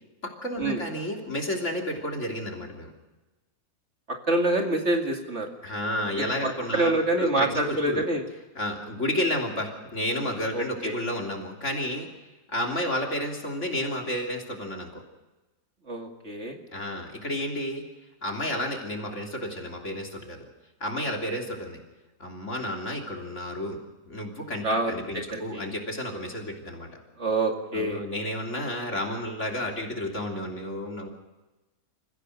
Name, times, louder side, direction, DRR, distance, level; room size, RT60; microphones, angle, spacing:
voice 1, 0.2-2.9 5.6-8.0 8.6-12.1 12.5-15.0 16.7-17.8 18.2-20.4 20.8-21.8 22.2-23.8 24.1-26.9 27.7-31.1, left 1 dB, 45° left, 1 dB, 3.5 m, -31 dB
voice 2, 4.3-5.5 6.7-8.2 10.5-10.9 15.9-16.6 24.6-24.9 25.3-25.6 27.2-28.0, right 2 dB, 40° right, 2 dB, 2.5 m, -26 dB
28.5 x 15.5 x 6.5 m, 1.1 s
omnidirectional pair, 1.7 m